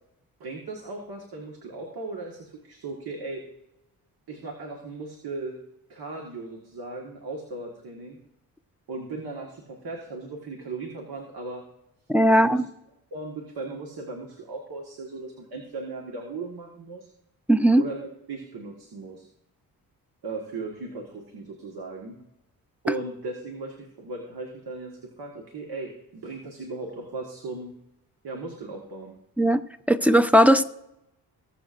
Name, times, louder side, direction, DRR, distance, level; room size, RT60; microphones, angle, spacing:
voice 1, 0.4-3.4 4.3-5.6 5.9-8.2 8.9-11.6 12.3-12.6 13.1-17.1 17.8-19.3 20.2-22.2 22.8-27.7 28.2-29.2, right 3 dB, 70° right, 1.7 m, -37 dB
voice 2, 12.1-12.6 17.5-17.8 29.4-29.6 29.9-30.6, equal, 5° right, 0.7 m, -18 dB
19.0 x 7.3 x 2.6 m
supercardioid pair, 55°, 39 cm